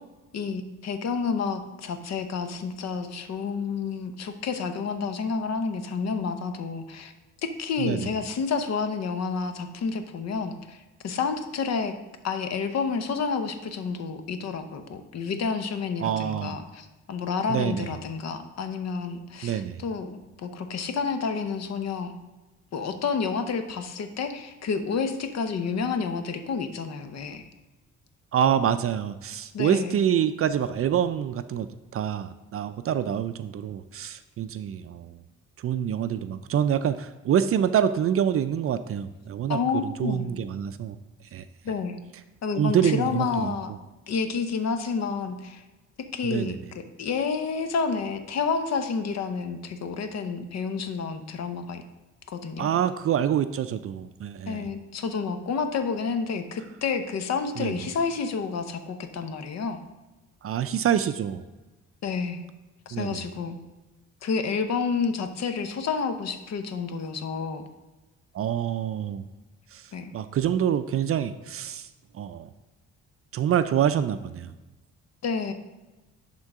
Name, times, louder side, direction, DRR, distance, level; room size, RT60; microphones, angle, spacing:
voice 1, 0.3-7.1 7.4-11.9 12.2-22.2 22.7-27.4 29.5-30.0 39.5-40.3 41.6-42.0 42.4-43.7 44.1-45.6 46.0-51.8 52.3-52.7 54.5-59.8 62.0-62.4 62.9-63.6 64.2-67.7 69.9-70.1 75.2-75.5, left 5 dB, 60° left, 8 dB, 0.9 m, -29 dB
voice 2, 7.8-8.1 16.0-16.6 17.5-17.9 19.4-19.8 28.3-31.7 31.9-35.2 35.6-41.0 41.3-41.4 42.5-43.6 46.2-46.6 52.6-54.7 57.6-57.8 60.4-61.4 62.9-63.2 68.3-69.3 69.7-71.9 72.1-72.5 73.3-74.5, right 9 dB, 50° right, 11 dB, 0.4 m, -26 dB
11.5 x 3.8 x 3.6 m, 1.1 s
cardioid pair, 90°, 30 cm